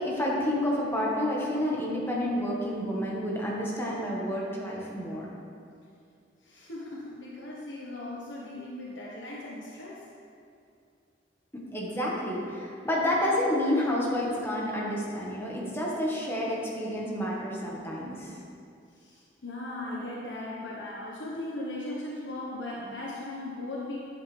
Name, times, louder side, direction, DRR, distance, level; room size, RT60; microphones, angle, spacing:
voice 1, 0.0-5.3 11.5-18.3, left 1 dB, 15° left, -4 dB, 1.6 m, -29 dB
voice 2, 6.4-10.0 19.0-24.0, left 1 dB, 75° left, -5 dB, 1.3 m, -38 dB
11.0 x 8.1 x 3.5 m, 2.4 s
head